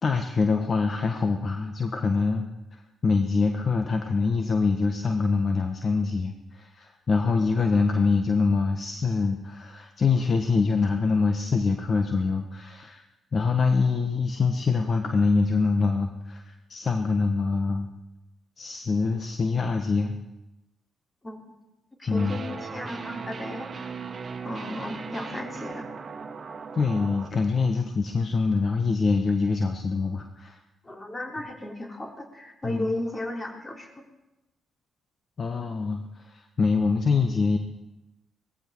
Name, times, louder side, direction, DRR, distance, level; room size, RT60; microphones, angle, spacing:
voice 1, 0.0-2.4 2.7-13.0 13.3-17.9 18.6-20.2 22.1-22.4 26.7-30.6 32.6-32.9 35.4-37.6, left 4 dB, 50° left, 5 dB, 1.3 m, -25 dB
voice 2, 22.0-24.0 24.4-25.9 30.8-33.9, left 1 dB, 25° left, 2 dB, 3.3 m, -35 dB
sound 1, 22.2-27.3, right 5 dB, 45° right, 1.3 m, -38 dB
18.0 x 15.0 x 4.7 m, 1.0 s
hypercardioid pair, 50°, 0 cm